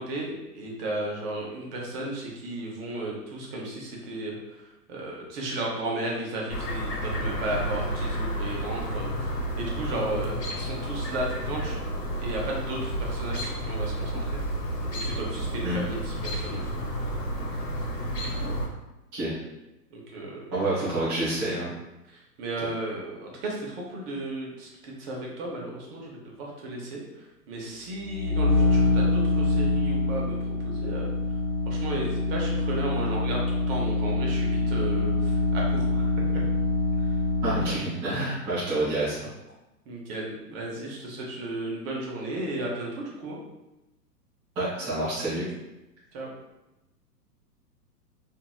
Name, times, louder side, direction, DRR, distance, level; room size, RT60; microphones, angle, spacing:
voice 1, 0.0-4.4 4.9-11.7 12.2-14.4 14.9-16.8 19.9-20.4 22.4-27.0 27.5-30.4 30.6-31.1 31.7-36.4 39.9-43.4 46.1-46.3, right 1 dB, 35° right, -2 dB, 0.8 m, -34 dB
Chirp tweet, 6.5-18.6, right 1 dB, 80° left, 0.9 m, -31 dB
voice 2, 20.5-21.7 37.4-39.2 44.6-45.4, right 2 dB, 10° right, -13 dB, 0.4 m, -28 dB
sound 1, 28.0-37.9, left 2 dB, 50° left, 1.4 m, -25 dB
2.9 x 2.6 x 2.3 m, 0.96 s
figure-of-eight pair, 115°, 48 cm